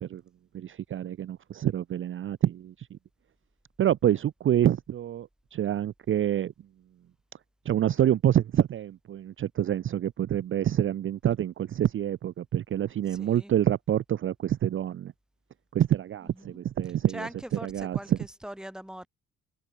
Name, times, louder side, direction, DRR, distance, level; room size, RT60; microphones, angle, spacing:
voice 1, 0.5-3.0 3.8-6.5 7.7-15.1 15.7-18.3, right 11 dB, 45° right, 0.5 m, -27 dB
voice 2, 13.1-13.5 16.3-16.6 17.1-19.1, right 1 dB, ahead, 1.6 m, -42 dB
cardioid pair, 90°, 30 cm